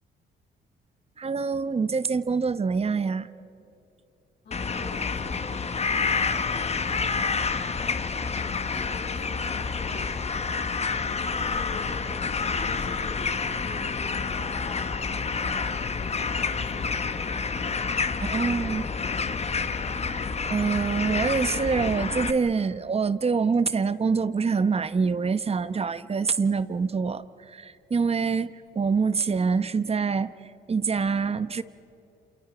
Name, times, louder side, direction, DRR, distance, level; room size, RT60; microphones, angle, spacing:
voice 1, 1.2-3.3 18.2-18.8 20.5-30.3 30.7-31.6, right 5 dB, 30° right, 0.9 m, -25 dB
voice 2, 4.4-7.0 7.6-10.6 11.0-12.0 12.5-17.0 18.0-19.0, left 3 dB, 60° left, 7.4 m, -46 dB
sound 1, 4.5-22.3, left 5 dB, 30° left, 1.1 m, -28 dB
28.5 x 28.5 x 5.1 m
cardioid pair, 90°, 20 cm